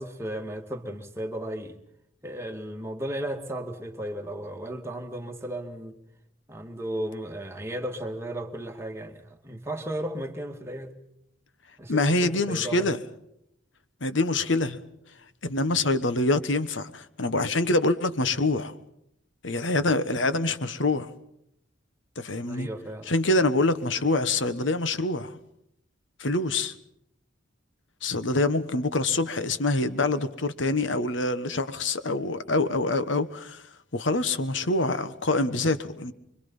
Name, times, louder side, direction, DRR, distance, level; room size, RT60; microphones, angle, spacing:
voice 1, 0.0-1.8 2.2-6.0 6.5-10.9 11.8-12.9 22.4-23.1, right 1 dB, 15° right, 2.1 m, -35 dB
voice 2, 11.9-13.0 14.0-14.8 15.4-18.7 19.4-21.1 22.2-22.7 23.1-25.4 26.2-26.7 28.0-33.6 33.9-36.1, left 2 dB, 70° left, 1.4 m, -25 dB
25.5 x 24.0 x 5.6 m
head